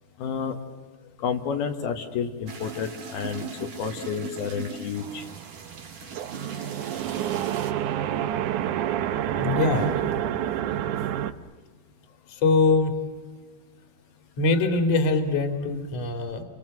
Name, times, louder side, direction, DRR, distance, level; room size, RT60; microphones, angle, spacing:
voice 1, 0.2-0.6 1.2-5.3, left 6 dB, 75° left, 4 dB, 3.4 m, -30 dB
sound 1, 2.5-7.7, right 4 dB, 35° right, 2.6 m, -40 dB
sound 2, 5.0-11.3, right 11 dB, 70° right, 2.1 m, -28 dB
voice 2, 9.2-10.0 12.3-13.0 14.4-16.4, left 3 dB, 45° left, 7 dB, 3.3 m, -23 dB
29.5 x 24.5 x 7.7 m, 1.4 s
omnidirectional pair, 4.4 m